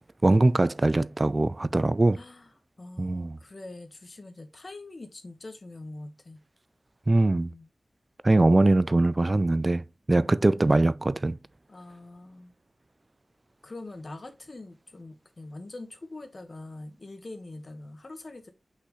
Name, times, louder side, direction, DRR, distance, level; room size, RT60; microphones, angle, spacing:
voice 1, 0.2-2.2 3.0-3.4 7.1-7.5 8.2-11.4, right 2 dB, 30° right, 0.4 m, -22 dB
voice 2, 2.1-2.5 2.8-6.4 7.3-7.7 10.2-10.7 11.7-12.5 13.6-18.5, left 2 dB, 40° left, 1.4 m, -43 dB
6.0 x 5.7 x 3.2 m
wide cardioid pair, 105°, 0 cm